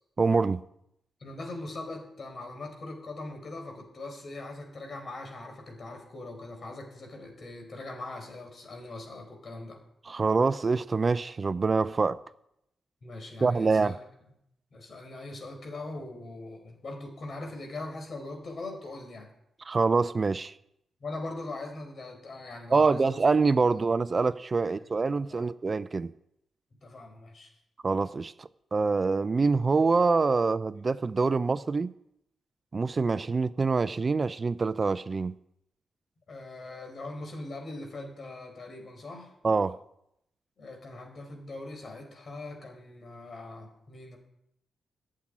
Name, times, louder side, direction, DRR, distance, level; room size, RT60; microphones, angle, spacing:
voice 1, 0.2-0.6 10.0-12.2 13.4-14.0 19.6-20.5 22.7-26.1 27.8-31.9 32.7-35.3 39.4-39.8, right 4 dB, 35° right, 0.4 m, -25 dB
voice 2, 1.2-9.8 13.0-14.0 14.7-19.3 21.0-23.2 24.6-24.7 25.3-25.5 26.8-27.5 36.3-39.3 40.6-44.2, left 2 dB, 50° left, 4.3 m, -41 dB
12.5 x 7.4 x 9.9 m
cardioid pair, 80°, 0 cm